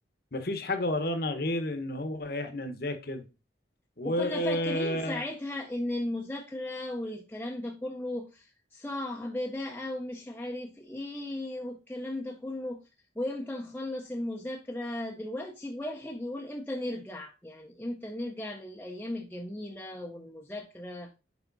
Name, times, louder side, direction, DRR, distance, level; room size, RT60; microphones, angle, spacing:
voice 1, 0.3-3.2 4.0-5.2, left 1 dB, 55° left, 1.1 m, -31 dB
voice 2, 4.0-12.8 13.2-21.1, left 1 dB, 10° left, 0.7 m, -36 dB
7.2 x 5.0 x 4.0 m
head